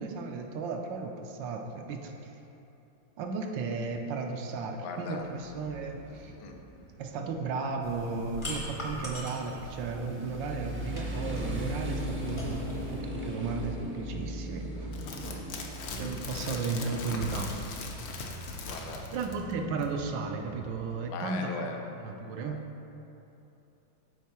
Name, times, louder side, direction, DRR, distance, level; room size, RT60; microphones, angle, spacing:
voice 1, 0.0-2.3 3.2-6.3 7.0-14.9 16.0-17.5 19.1-21.5 22.0-22.6, right 4 dB, 75° right, 3 dB, 1.2 m, -34 dB
voice 2, 4.8-5.3 6.4-6.6 15.2-15.5 18.7-19.1 21.1-21.8 22.4-22.6, left 4 dB, 85° left, 3 dB, 1.5 m, -39 dB
Motorcycle, 5.2-20.9, equal, 15° right, 0.3 m, -40 dB
sound 1, 7.8-13.0, equal, 25° left, 0.7 m, -42 dB
sound 2, 14.9-19.5 19.8-19.9, left 4 dB, 65° left, 1.0 m, -39 dB
8.1 x 4.5 x 4.3 m, 2.9 s
omnidirectional pair, 2.1 m